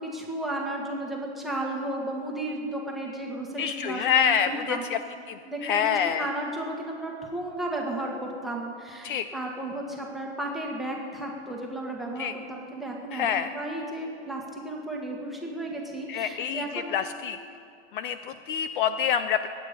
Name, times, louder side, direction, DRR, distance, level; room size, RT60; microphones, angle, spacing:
voice 1, 0.0-4.8 5.5-17.0, right 1 dB, ahead, -2 dB, 1.5 m, -34 dB
voice 2, 3.6-5.0 5.3-6.3 9.0-9.3 12.2-12.3 13.1-13.5 16.1-17.4 17.9-19.5, left 8 dB, 50° left, 11 dB, 0.5 m, -27 dB
22.0 x 9.0 x 5.2 m, 2.3 s
supercardioid pair, 155°, 34 cm